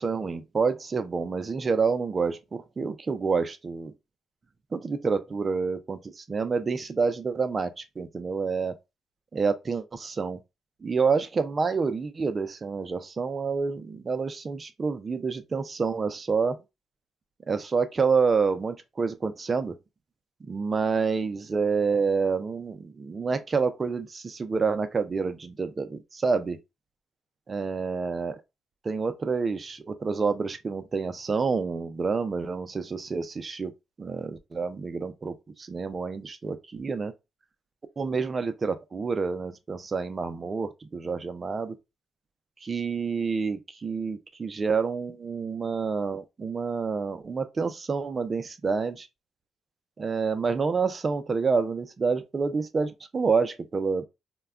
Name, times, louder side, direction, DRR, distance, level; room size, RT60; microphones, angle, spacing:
voice 1, 0.0-3.9 4.7-8.7 9.3-10.4 10.8-16.6 17.5-19.8 20.5-26.6 27.5-28.4 28.8-33.7 34.0-37.1 38.0-41.8 42.6-49.1 50.0-54.1, right 5 dB, 35° right, 0.4 m, -28 dB
2.2 x 2.1 x 3.5 m
cardioid pair, 90°, 0 cm